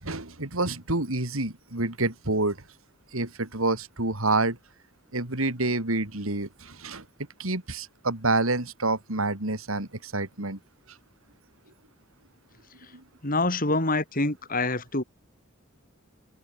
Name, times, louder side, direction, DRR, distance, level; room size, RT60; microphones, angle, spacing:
voice 1, 0.0-2.6 3.1-4.6 5.1-7.0 7.4-10.6 12.9-13.0, right 2 dB, 85° right, 3.8 m, -28 dB
voice 2, 13.2-15.0, left 2 dB, 45° left, 5.6 m, -26 dB
head